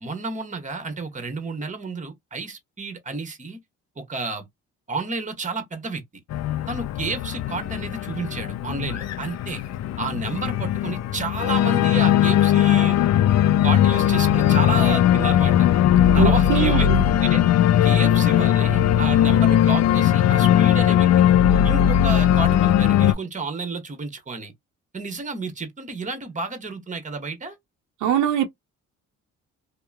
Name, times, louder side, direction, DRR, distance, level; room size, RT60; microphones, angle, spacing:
voice 1, 0.0-3.6 4.0-4.5 4.9-6.0 6.7-9.6 10.0-13.0 13.6-15.7 16.1-16.9 17.2-17.4 17.8-21.1 21.6-24.5 24.9-27.6, right 3 dB, 25° right, 1.1 m, -31 dB
Organ, 6.3-23.1, left 11 dB, 60° left, 0.4 m, -19 dB
voice 2, 16.2-17.0 28.0-28.5, right 8 dB, 80° right, 0.6 m, -22 dB
2.9 x 2.1 x 2.2 m
cardioid pair, 90°, 30 cm